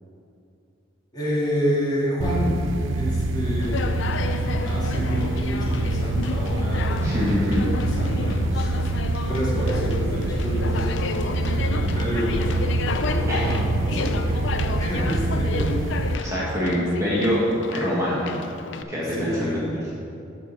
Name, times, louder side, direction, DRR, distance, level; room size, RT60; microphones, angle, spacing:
voice 1, 1.1-2.6 2.9-4.0 4.6-8.7 9.3-10.9 11.4-12.8 13.0-15.7 16.1-16.3 18.9-19.6, equal, 20° left, -7 dB, 2.3 m, -29 dB
sound 1, 2.2-16.2, right 2 dB, 70° right, 0.6 m, -25 dB
Conversation, 3.6-18.8, left 4 dB, 65° left, 0.5 m, -33 dB
voice 2, 7.0-7.7 13.3-13.6 16.2-17.4 17.7-18.3 18.9-19.8, equal, 15° right, -7 dB, 1.5 m, -25 dB
11.5 x 4.6 x 6.3 m, 2.7 s
head